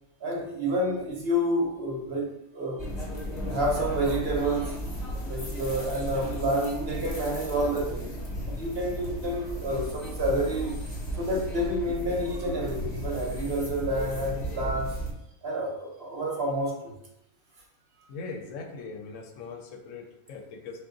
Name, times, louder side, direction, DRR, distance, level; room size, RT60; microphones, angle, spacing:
voice 1, 0.2-2.8 3.5-4.8 5.3-8.1 8.5-10.8 11.2-14.9 15.4-16.9, right 1 dB, 55° right, -2 dB, 0.9 m, -29 dB
sound 1, 2.8-15.1, equal, 35° left, 0.9 m, -34 dB
voice 2, 18.1-20.8, left 4 dB, 75° left, 3 dB, 0.9 m, -40 dB
3.6 x 2.5 x 3.7 m, 0.84 s
omnidirectional pair, 1.4 m